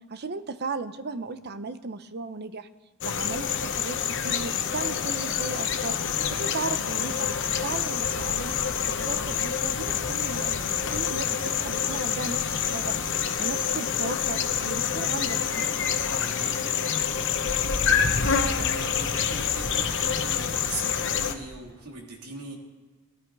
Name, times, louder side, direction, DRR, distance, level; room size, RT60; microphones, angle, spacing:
voice 1, 0.1-2.7 3.0-6.0 6.3-7.3 7.6-8.6 9.1-12.9 13.4-15.7, right 4 dB, 50° right, 11 dB, 0.7 m, -36 dB
sound 1, 3.0-21.3, left 7 dB, 55° left, 1.0 m, -27 dB
voice 2, 16.2-16.6 17.6-22.5, right 2 dB, 85° right, 0 dB, 2.9 m, -40 dB
19.0 x 11.0 x 4.7 m, 1.4 s
head